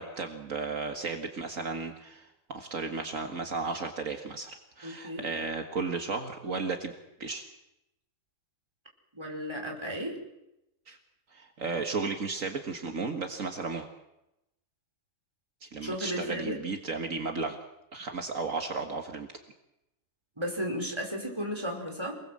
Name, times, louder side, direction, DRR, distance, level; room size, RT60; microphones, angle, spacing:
voice 1, 0.0-6.9 7.2-7.4 10.9-11.0 11.3-13.9 15.6-17.6 17.9-19.3, right 4 dB, 45° right, 4 dB, 1.0 m, -34 dB
voice 2, 4.8-5.3 9.1-10.2 15.8-16.6 20.4-22.2, equal, 5° right, 0 dB, 4.7 m, -34 dB
28.0 x 20.0 x 7.6 m, 0.89 s
omnidirectional pair, 3.8 m